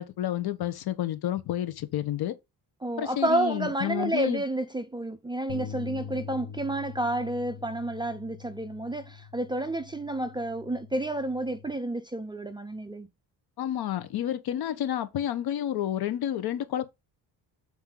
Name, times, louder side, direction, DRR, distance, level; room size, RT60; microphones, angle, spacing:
voice 1, 0.0-2.4 3.0-4.4 13.6-16.9, left 11 dB, 65° left, 1.1 m, -30 dB
voice 2, 2.8-13.1, right 1 dB, 10° right, 0.5 m, -30 dB
sound 1, 5.5-11.7, left 7 dB, 85° left, 1.3 m, -43 dB
7.5 x 4.4 x 3.9 m
cardioid pair, 145°, 40 cm